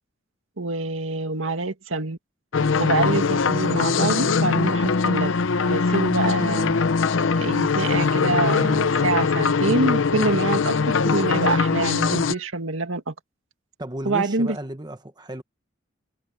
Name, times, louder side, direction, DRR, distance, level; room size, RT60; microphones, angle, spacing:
voice 1, 0.6-2.2 2.8-5.3 5.7-6.8 7.4-13.1 14.1-14.6, right 3 dB, 85° right, 2.2 m, -25 dB
sound 1, 2.5-12.3, left 5 dB, 75° left, 0.6 m, -21 dB
sound 2, 3.6-5.9 7.3-9.5 10.4-12.5, left 3 dB, 15° left, 4.4 m, -49 dB
voice 2, 13.8-15.4, right 1 dB, 20° right, 1.2 m, -33 dB
head